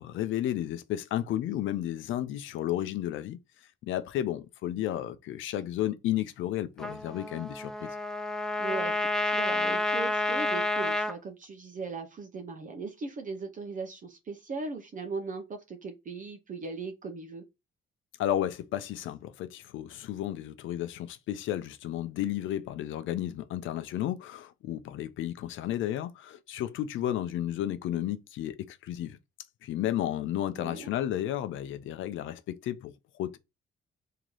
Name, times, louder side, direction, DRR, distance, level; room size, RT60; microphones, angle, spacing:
voice 1, 0.0-3.4 3.8-7.9 18.2-29.2 29.6-33.4, left 12 dB, 80° left, 0.5 m, -32 dB
Trumpet, 6.8-11.1, left 2 dB, 5° left, 0.4 m, -29 dB
voice 2, 8.6-17.4 30.6-30.9, right 4 dB, 40° right, 0.7 m, -38 dB
3.0 x 2.8 x 3.7 m
cardioid pair, 90°, 20 cm